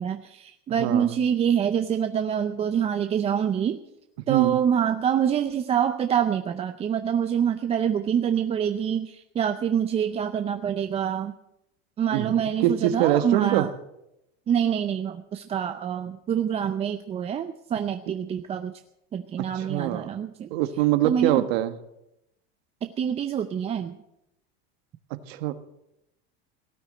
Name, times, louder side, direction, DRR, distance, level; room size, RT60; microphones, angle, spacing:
voice 1, 0.0-3.8 4.3-11.3 12.0-13.7 14.5-18.7 19.1-20.5 21.0-21.4 22.8-24.0, right 8 dB, 20° right, 8 dB, 0.5 m, -26 dB
voice 2, 0.8-1.1 4.3-4.6 12.1-12.3 12.6-13.7 19.4-20.1 20.5-21.7 25.1-25.5, right 13 dB, 75° right, 11 dB, 1.4 m, -24 dB
17.5 x 9.5 x 7.7 m, 0.86 s
supercardioid pair, 145°, 31 cm